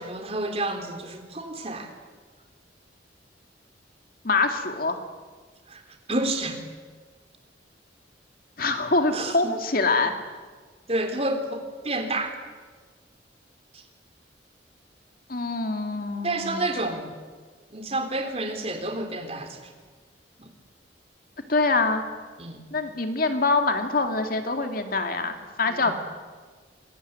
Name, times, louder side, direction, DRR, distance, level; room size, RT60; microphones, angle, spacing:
voice 1, 0.0-1.9 5.7-5.8 6.1-6.6 9.1-9.5 10.9-12.3 13.7-13.8 16.2-17.2 17.7-19.7 20.4-20.5 22.4-22.6 25.7-26.0, right 2 dB, 35° right, 5 dB, 3.5 m, -30 dB
voice 2, 4.2-5.0 8.6-10.1 15.3-16.6 21.5-22.1 22.7-25.9, left 3 dB, 50° left, 6 dB, 2.5 m, -24 dB
26.5 x 22.0 x 9.6 m, 1.5 s
head